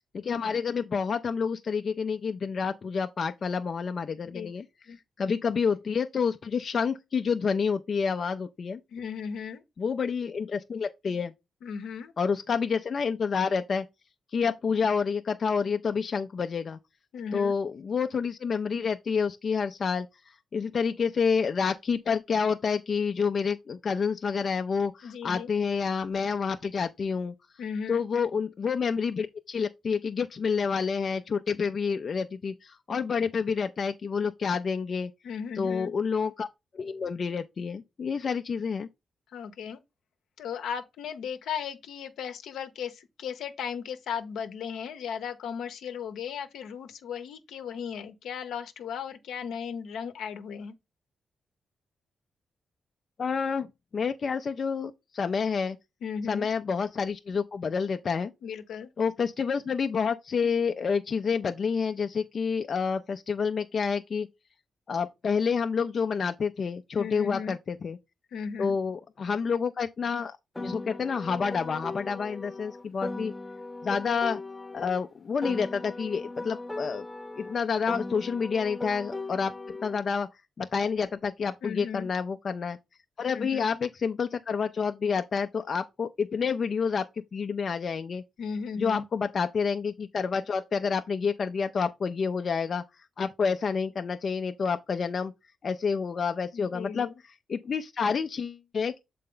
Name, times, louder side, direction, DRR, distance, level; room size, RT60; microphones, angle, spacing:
voice 1, 0.1-4.6 5.2-8.8 9.8-11.3 12.2-13.9 14.3-16.8 17.3-20.1 20.5-27.3 27.9-35.1 35.6-36.5 36.7-38.9 53.2-55.8 56.3-58.3 59.0-64.3 64.9-68.0 68.6-73.3 73.8-74.4 74.7-77.0 77.4-79.5 79.8-80.3 80.6-82.8 83.2-88.2 88.8-92.8 93.2-95.3 95.6-97.1 97.5-99.0, left 5 dB, 55° left, 0.4 m, -28 dB
voice 2, 8.9-9.6 11.6-12.1 17.1-17.5 25.0-25.5 27.6-28.1 35.2-35.9 39.3-39.8 40.4-50.7 56.0-56.5 58.4-58.9 66.9-67.6 68.3-68.8 81.6-82.1 83.3-83.7 88.4-89.0 96.5-97.1, left 7 dB, 85° left, 0.8 m, -36 dB
Piano, 70.5-75.0 75.4-80.0, left 2 dB, 15° left, 0.8 m, -38 dB
6.7 x 4.2 x 3.7 m
supercardioid pair, 55°, 0 cm